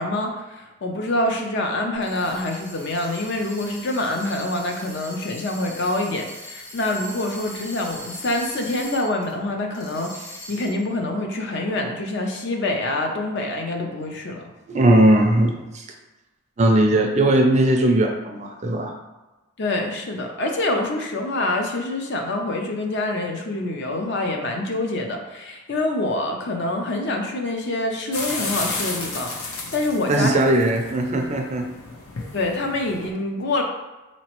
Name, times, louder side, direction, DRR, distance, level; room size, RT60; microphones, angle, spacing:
voice 1, 0.0-14.4 19.6-30.4 32.3-33.6, left 2 dB, 50° left, 2 dB, 0.5 m, -26 dB
sound 1, 1.9-9.3 9.7-10.9, equal, 35° left, 1.3 m, -40 dB
voice 2, 14.7-15.9 16.6-18.9 30.1-31.6, right 1 dB, 30° right, 3 dB, 0.4 m, -18 dB
sound 2, 28.1-33.1, left 3 dB, 80° left, 0.8 m, -33 dB
4.1 x 2.9 x 3.0 m, 1.1 s
head